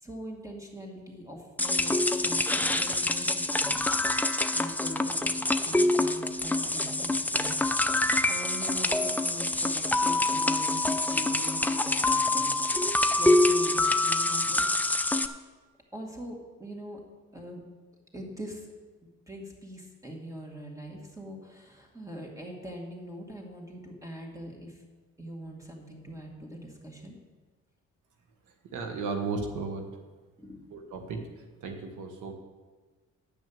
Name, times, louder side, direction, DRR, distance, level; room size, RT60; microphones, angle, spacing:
voice 1, 0.0-3.8 4.5-7.6 8.3-12.6 13.1-14.7 15.9-17.0 17.3-17.6 18.1-18.7 19.0-24.8 25.2-27.2 30.4-30.9, equal, 10° right, 0 dB, 2.5 m, -42 dB
sound 1, 1.6-15.3, left 2 dB, 5° left, 0.5 m, -26 dB
voice 2, 28.7-29.9 30.7-31.2 31.6-32.3, right 4 dB, 80° right, 4 dB, 1.4 m, -34 dB
10.0 x 6.2 x 7.4 m, 1.3 s
cardioid pair, 90°, 30 cm